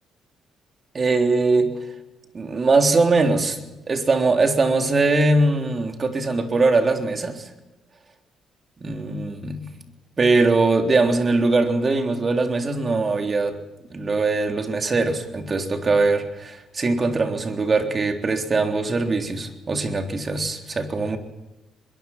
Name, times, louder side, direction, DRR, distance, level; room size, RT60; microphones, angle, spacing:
voice 1, 0.9-1.7 2.3-3.6 3.9-7.5 8.8-9.7 10.2-13.6 13.9-21.2, right 3 dB, 35° right, 4 dB, 3.6 m, -21 dB
24.0 x 22.5 x 6.1 m, 0.99 s
cardioid pair, 90°, 0 cm